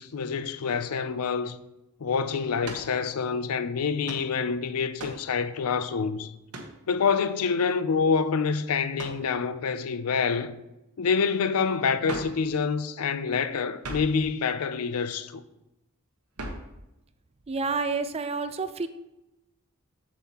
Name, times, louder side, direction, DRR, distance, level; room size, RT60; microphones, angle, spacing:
voice 1, 0.0-1.6 2.0-6.3 6.9-10.6 11.0-15.4, left 5 dB, 75° left, 0.5 m, -27 dB
sound 1, 2.6-2.9 4.0-4.3 5.0-5.3 6.5-6.8 9.0-9.3 12.0-12.4 13.8-14.2 16.4-16.7, right 2 dB, 80° right, 1.1 m, -38 dB
voice 2, 17.5-18.9, right 4 dB, 25° right, 0.4 m, -29 dB
7.4 x 7.1 x 2.9 m
head